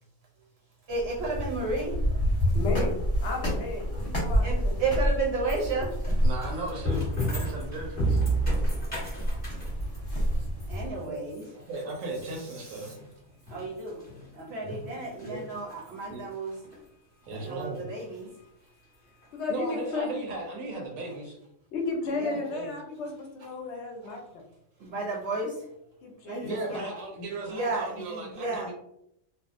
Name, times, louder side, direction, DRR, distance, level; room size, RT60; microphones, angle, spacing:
sound 1, 0.9-10.9, equal, 35° left, 0.9 m, -29 dB
voice 1, 0.9-2.0 4.4-6.0 10.3-11.5 12.6-12.9 13.5-14.0 14.3-16.6 17.3-18.3 22.2-22.4 24.8-25.7 26.3-26.9 27.5-28.7, right 3 dB, 60° right, -3 dB, 0.8 m, -33 dB
voice 2, 2.5-4.8 19.3-20.1 21.7-24.4 26.0-26.9, left 4 dB, 65° left, 1 dB, 0.8 m, -34 dB
sound 2, 5.5-14.4 14.7-16.1 16.5-16.8 17.3-17.4 17.7-17.8 18.1-18.2 19.2-19.3 19.5-19.6, right 2 dB, 10° left, 0.9 m, -33 dB
voice 3, 6.2-8.2 11.1-11.2 11.5-13.0 14.6-14.7 15.2-15.4 16.1-16.2 17.3-17.9 19.5-21.4 22.3-22.7 26.4-28.7, right 2 dB, 85° right, 0 dB, 1.0 m, -36 dB
2.6 x 2.0 x 2.4 m, 0.76 s
omnidirectional pair, 1.4 m